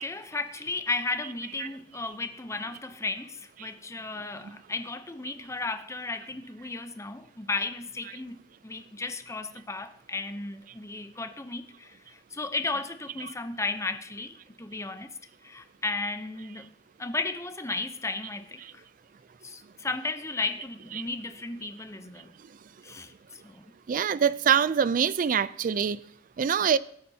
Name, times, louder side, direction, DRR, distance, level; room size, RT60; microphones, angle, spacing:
voice 1, 0.0-8.4 8.6-15.1 15.4-16.7 17.0-18.8 19.4-22.3 22.8-23.1 23.4-23.6, left 3 dB, 15° left, 0.7 m, -34 dB
voice 2, 23.9-26.0 26.4-26.8, right 7 dB, 50° right, 0.4 m, -25 dB
18.0 x 8.5 x 2.8 m
head